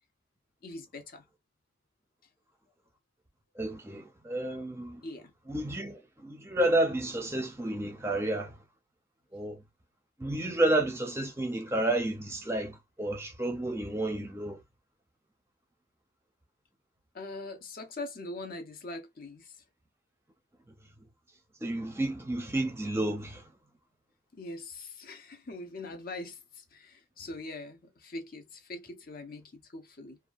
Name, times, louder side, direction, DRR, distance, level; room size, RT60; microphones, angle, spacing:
voice 1, 0.6-1.2 5.0-5.3 17.1-19.5 24.3-30.2, left 2 dB, 45° left, 0.6 m, -42 dB
voice 2, 3.6-5.0 5.5-8.5 9.3-9.6 10.2-14.6 21.6-23.4, right 1 dB, 15° right, 0.5 m, -31 dB
2.7 x 2.2 x 2.4 m
head